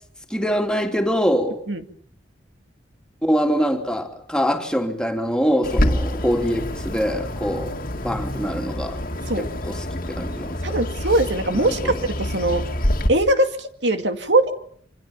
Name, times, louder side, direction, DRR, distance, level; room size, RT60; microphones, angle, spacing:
voice 1, 0.3-1.6 3.2-7.7 8.0-9.0 9.4-10.6 11.5-11.9, equal, 5° left, 3.0 m, -24 dB
Bird, 5.6-13.1, left 1 dB, 50° left, 2.2 m, -27 dB
voice 2, 10.6-12.6 13.1-14.5, right 1 dB, 70° right, 2.3 m, -21 dB
27.0 x 26.0 x 7.1 m
head